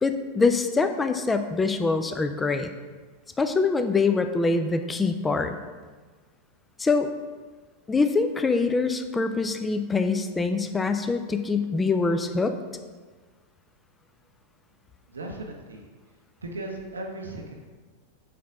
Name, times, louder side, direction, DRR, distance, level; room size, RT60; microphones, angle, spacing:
voice 1, 0.0-2.7 3.4-5.6 6.8-7.1 7.9-12.5, left 4 dB, 15° left, 8 dB, 0.4 m, -24 dB
voice 2, 15.1-15.9 16.4-17.7, right 2 dB, 75° right, 1 dB, 0.7 m, -37 dB
5.9 x 4.2 x 4.7 m, 1.4 s
figure-of-eight pair, 90°, 0 cm